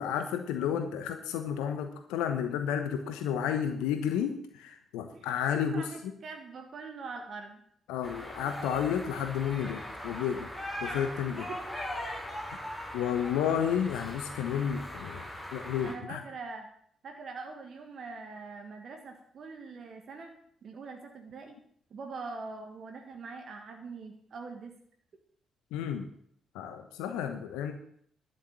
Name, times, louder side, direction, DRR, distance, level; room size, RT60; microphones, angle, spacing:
voice 1, 0.0-5.9 7.9-10.5 10.8-11.5 12.9-16.2 25.7-26.1 26.5-27.7, left 8 dB, 70° left, 8 dB, 1.0 m, -31 dB
voice 2, 5.7-7.6 8.4-8.7 9.0-9.3 11.3-11.8 12.7-13.1 13.4-13.7 15.8-16.7 17.0-20.3 20.6-21.6 21.9-24.7, right 4 dB, 55° right, 3 dB, 1.7 m, -43 dB
sound 1, 8.0-15.9, left 1 dB, 10° left, 5.8 m, -40 dB
11.5 x 6.7 x 8.3 m, 0.64 s
figure-of-eight pair, 40°, 0 cm